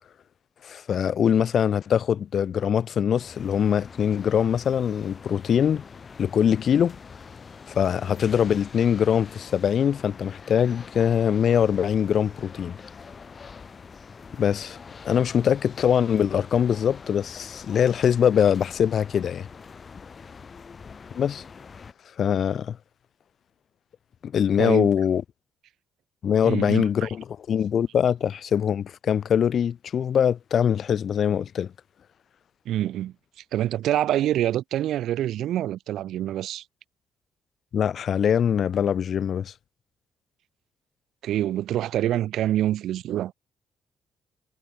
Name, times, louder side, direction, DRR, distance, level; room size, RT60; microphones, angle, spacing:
voice 1, 0.6-5.8 6.2-7.0 7.7-12.8 14.4-14.8 15.0-19.5 21.1-21.4 22.2-22.8 24.2-25.2 26.2-31.7 37.7-39.5, left 8 dB, 60° left, 0.4 m, -23 dB
sound 1, 3.1-21.9, left 5 dB, 40° left, 4.3 m, -44 dB
voice 2, 24.6-24.9 26.4-27.1 32.7-33.1 33.5-36.6 41.2-43.3, right 12 dB, 80° right, 0.5 m, -26 dB
cardioid pair, 90°, 0 cm